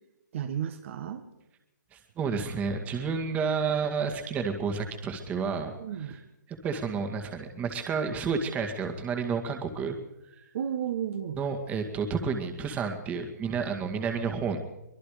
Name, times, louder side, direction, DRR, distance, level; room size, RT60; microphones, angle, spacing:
voice 1, 0.3-1.2 5.7-6.2 10.5-11.4, right 9 dB, 45° right, 7 dB, 1.7 m, -33 dB
voice 2, 1.9-5.7 6.0-6.2 6.5-10.0 11.3-14.6, right 5 dB, 15° right, 5 dB, 2.1 m, -30 dB
24.0 x 21.5 x 5.1 m, 0.93 s
hypercardioid pair, 155°, 10 cm